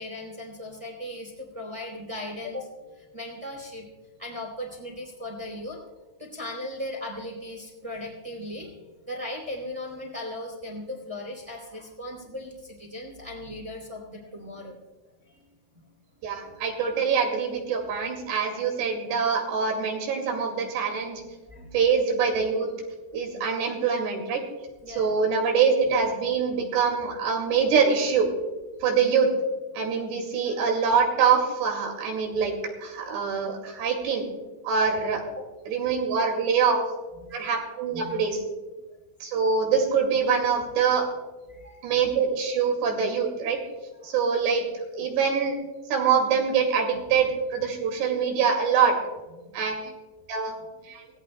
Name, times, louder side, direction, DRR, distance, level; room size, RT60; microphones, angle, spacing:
voice 1, 0.0-3.9 4.2-5.8 6.2-8.7 9.1-14.8 15.3-15.4 16.4-16.5 18.1-18.2 21.5-21.8 24.8-25.1 30.4-30.6 35.3-35.4 37.2-37.6 37.9-38.1 41.5-41.8 44.0-44.1 49.4-49.9, left 1 dB, 10° right, -1 dB, 2.4 m, -38 dB
voice 2, 16.2-21.2 21.7-22.7 23.1-24.4 24.9-28.3 28.8-29.3 29.7-32.5 32.8-34.3 34.6-35.2 35.7-36.8 37.3-38.4 39.2-41.1 41.8-43.6 44.0-44.7 45.0-45.6 45.9-48.9 49.5-49.9 50.3-50.6 50.8-51.0, right 6 dB, 80° right, 2 dB, 4.2 m, -24 dB
25.5 x 17.5 x 2.2 m, 1.3 s
omnidirectional pair, 4.9 m